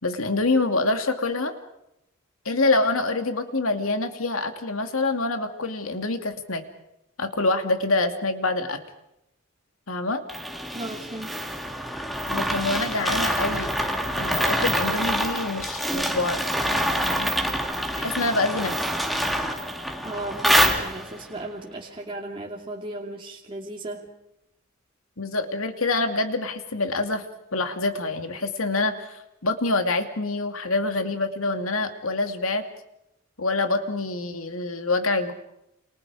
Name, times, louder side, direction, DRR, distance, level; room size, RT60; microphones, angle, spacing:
voice 1, 0.0-1.5 2.4-6.6 7.2-8.8 9.9-10.2 12.3-13.7 14.2-17.3 18.0-18.8 25.2-27.3 27.5-32.6 33.4-35.3, left 2 dB, 70° left, 6 dB, 2.6 m, -26 dB
sound 1, 10.3-21.3, equal, ahead, 2.3 m, -26 dB
voice 2, 10.7-11.4 20.0-24.1, right 1 dB, 25° right, -2 dB, 2.6 m, -35 dB
29.5 x 27.5 x 5.0 m, 0.84 s
head